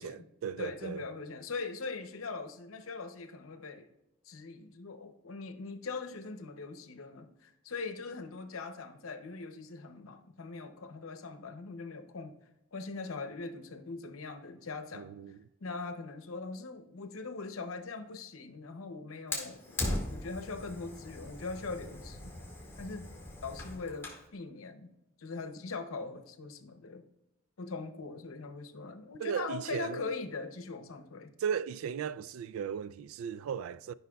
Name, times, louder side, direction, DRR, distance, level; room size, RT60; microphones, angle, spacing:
voice 1, 0.0-1.0 14.9-15.4 29.2-30.0 31.4-33.9, right 7 dB, 80° right, 0.3 m, -36 dB
voice 2, 0.6-3.9 4.2-12.4 12.7-15.3 15.6-19.8 20.1-22.3 22.8-23.1 23.4-24.9 25.2-27.0 27.6-31.3, left 4 dB, 85° left, 0.7 m, -41 dB
Fire, 19.3-24.3, left 1 dB, 10° left, 1.9 m, -39 dB
13.5 x 5.6 x 2.3 m
head